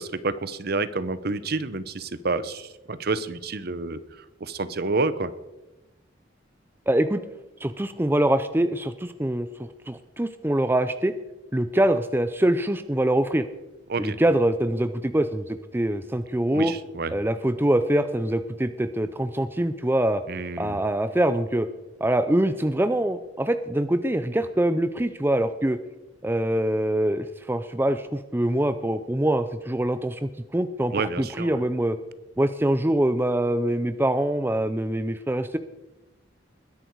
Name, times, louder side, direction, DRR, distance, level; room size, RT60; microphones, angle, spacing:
voice 1, 0.0-5.3 13.9-14.2 16.5-17.1 20.3-20.8 30.9-31.6, right 3 dB, 55° right, 14 dB, 0.8 m, -29 dB
voice 2, 6.9-7.2 7.6-11.1 11.5-13.4 14.0-16.7 17.1-20.2 20.6-21.7 22.0-25.8 26.2-32.0 32.4-35.6, right 1 dB, 10° right, 11 dB, 0.5 m, -24 dB
21.0 x 10.5 x 4.7 m, 1.0 s
head